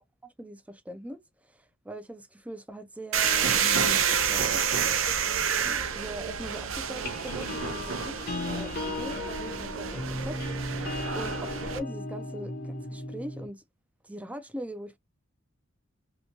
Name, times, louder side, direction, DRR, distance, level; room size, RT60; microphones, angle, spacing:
voice 1, 0.2-5.1 5.6-10.4 11.1-11.4 11.7-13.6 14.0-15.0, right 1 dB, 5° right, 0.4 m, -41 dB
sound 1, 3.1-6.5 7.0-13.5, left 2 dB, 50° left, 0.8 m, -37 dB
sound 2, 3.1-11.8, right 7 dB, 70° right, 0.5 m, -29 dB
2.9 x 2.1 x 2.8 m
head